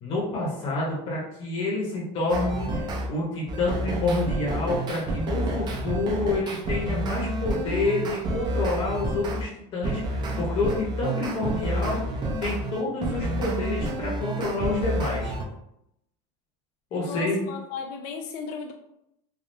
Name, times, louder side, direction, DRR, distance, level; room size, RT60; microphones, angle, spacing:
voice 1, 0.0-12.0 12.4-15.3 16.9-17.5, left 2 dB, 35° left, -5 dB, 0.9 m, -28 dB
sound 1, 2.3-3.1 3.5-9.4 9.8-15.4, right 1 dB, 30° right, 0.5 m, -29 dB
voice 2, 11.6-12.2 17.0-18.7, left 5 dB, 60° left, 3 dB, 0.4 m, -36 dB
3.3 x 2.3 x 2.6 m, 0.79 s
cardioid pair, 145°, 15 cm